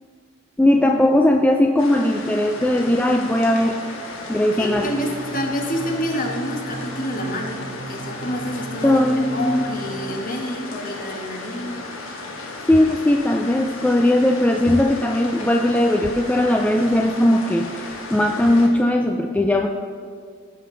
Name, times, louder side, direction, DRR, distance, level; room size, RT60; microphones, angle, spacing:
voice 1, 0.6-3.8 4.3-4.9 8.8-9.6 12.7-19.7, left 1 dB, 5° left, 2 dB, 0.3 m, -18 dB
sound 1, 1.8-18.7, left 2 dB, 80° left, 1.3 m, -35 dB
voice 2, 4.6-11.8, equal, 40° left, 2 dB, 1.3 m, -28 dB
sound 2, 4.7-10.2, right 3 dB, 55° right, 0.9 m, -37 dB
15.5 x 5.6 x 3.9 m, 2.1 s
head